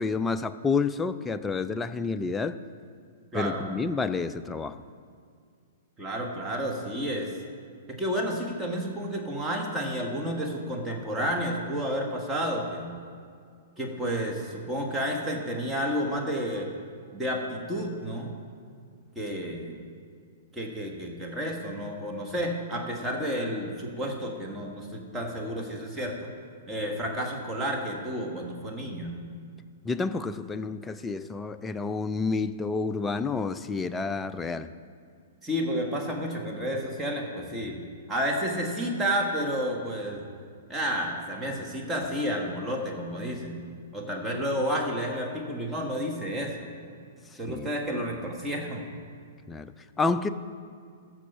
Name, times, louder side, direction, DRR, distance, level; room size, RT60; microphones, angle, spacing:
voice 1, 0.0-2.6 3.3-4.8 29.8-34.7 47.3-47.7 49.5-50.3, left 4 dB, 10° left, 11 dB, 0.4 m, -29 dB
voice 2, 3.3-3.6 6.0-7.3 7.9-12.9 13.8-16.7 17.1-18.3 19.1-19.7 20.5-26.3 26.7-29.2 35.4-37.8 38.1-40.2 40.7-43.6 43.9-46.7 47.4-48.8, equal, 10° right, 0 dB, 1.6 m, -31 dB
14.5 x 6.3 x 5.7 m, 2.2 s
figure-of-eight pair, 110°, 0 cm